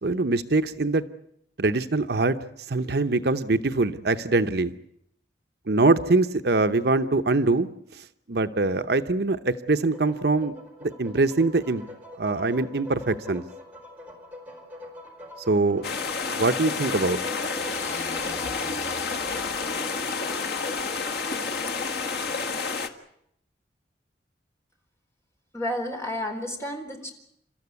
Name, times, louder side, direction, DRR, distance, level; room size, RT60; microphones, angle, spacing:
voice 1, 0.0-1.0 1.6-2.4 2.7-4.7 5.7-7.7 8.3-10.5 10.8-11.8 12.2-13.4 15.5-15.8 16.3-17.2, right 3 dB, 65° right, 10 dB, 0.8 m, -23 dB
sound 1, 9.7-22.6, left 1 dB, 10° right, 4.7 m, -44 dB
sound 2, 15.8-22.9, left 5 dB, 60° left, 1.6 m, -30 dB
sound 3, 17.4-22.2, left 2 dB, 45° left, 1.0 m, -40 dB
voice 2, 25.5-27.1, left 1 dB, 15° left, 3 dB, 4.0 m, -31 dB
29.5 x 13.5 x 9.6 m, 0.76 s
head